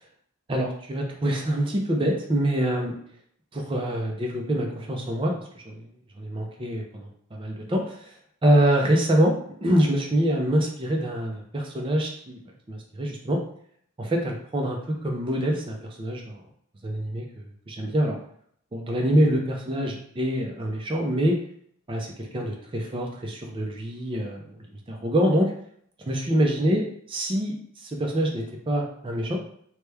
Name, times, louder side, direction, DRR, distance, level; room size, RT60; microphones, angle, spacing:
voice 1, 0.5-2.9 3.5-5.3 5.7-5.9 6.2-8.1 8.4-9.3 9.6-12.4 12.7-13.4 14.0-16.4 16.8-18.2 18.7-21.4 21.9-24.4 24.9-25.5 26.1-29.4, right 1 dB, 25° right, 0 dB, 0.4 m, -25 dB
3.0 x 2.2 x 3.3 m, 0.66 s
head